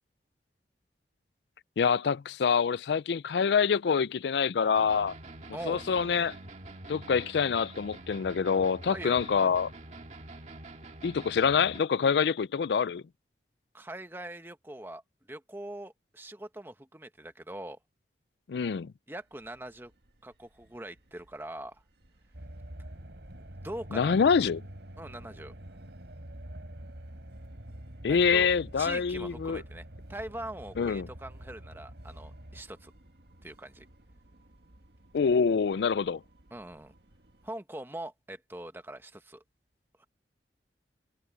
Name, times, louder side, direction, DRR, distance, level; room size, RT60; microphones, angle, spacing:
voice 1, 1.8-5.1 5.7-6.4 6.9-9.7 11.0-13.0 18.5-18.9 23.9-24.6 28.0-29.6 30.8-31.1 35.1-36.2, left 6 dB, 75° left, 0.4 m, -26 dB
sound 1, 4.7-11.8, right 2 dB, 40° right, 1.9 m, -46 dB
voice 2, 5.5-5.8 8.9-9.2 13.7-15.0 15.3-17.8 19.1-19.9 20.2-21.8 23.4-24.2 25.0-25.5 28.1-28.5 28.8-32.9 33.4-33.9 36.5-36.9 37.4-39.4, right 1 dB, 15° right, 1.2 m, -42 dB
sound 2, 19.1-37.5, right 1 dB, 65° right, 1.9 m, -60 dB
sound 3, 22.3-32.6, right 1 dB, 85° right, 3.5 m, -46 dB
head